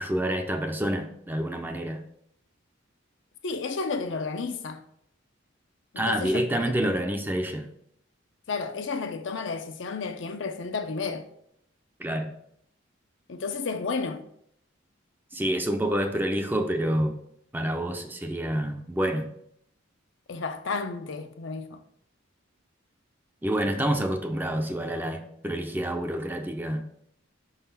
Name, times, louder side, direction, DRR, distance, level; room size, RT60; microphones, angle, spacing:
voice 1, 0.0-2.0 6.0-7.7 12.0-12.3 15.3-17.1 17.5-19.3 23.4-26.8, right 1 dB, 10° right, 0.5 m, -28 dB
voice 2, 3.4-4.8 5.9-6.6 8.5-11.3 13.3-14.2 20.3-21.8, left 4 dB, 60° left, 0.6 m, -32 dB
5.1 x 3.9 x 5.4 m
head